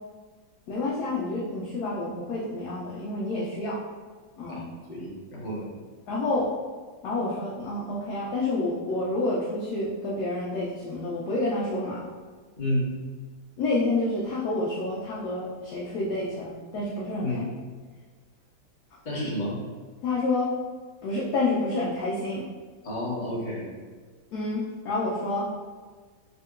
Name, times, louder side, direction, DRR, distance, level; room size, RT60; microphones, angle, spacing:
voice 1, 0.7-3.8 4.4-4.6 6.1-6.5 7.0-12.0 13.6-17.3 20.0-20.5 21.0-22.4 24.3-25.5, left 2 dB, 75° left, -5 dB, 0.9 m, -28 dB
voice 2, 4.4-5.7 12.6-12.9 17.2-17.5 19.0-19.6 22.8-23.7, left 1 dB, 40° left, -6 dB, 0.7 m, -30 dB
3.6 x 2.8 x 2.4 m, 1.5 s
omnidirectional pair, 2.1 m